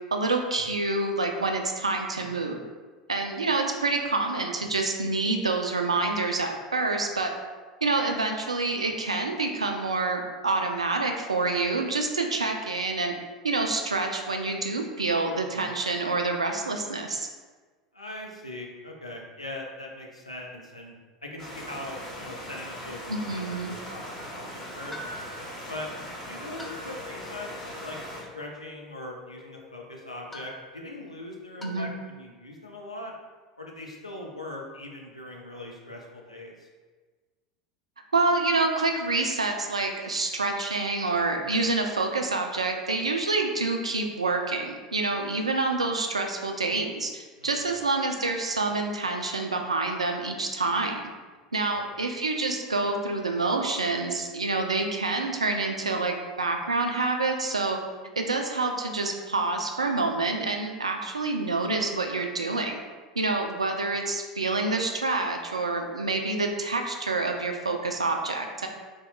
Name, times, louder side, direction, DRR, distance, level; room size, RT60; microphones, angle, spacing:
voice 1, 0.1-2.6 3.1-7.3 7.8-13.1 13.4-17.3 23.1-23.8 31.6-31.9 38.1-51.1 51.5-57.8 58.2-62.8 63.2-68.7, right 3 dB, 80° right, 3 dB, 0.3 m, -27 dB
voice 2, 17.9-20.9 21.2-25.0 25.7-25.9 26.3-33.1 33.6-36.7 47.4-47.7 51.7-51.9, left 1 dB, 85° left, 0 dB, 0.4 m, -41 dB
sound 1, 21.4-28.2, equal, 25° left, 1.4 m, -40 dB
sound 2, 24.9-31.9, left 2 dB, 5° left, 0.4 m, -47 dB
3.0 x 2.0 x 3.7 m, 1.4 s
figure-of-eight pair, 80°, 3 cm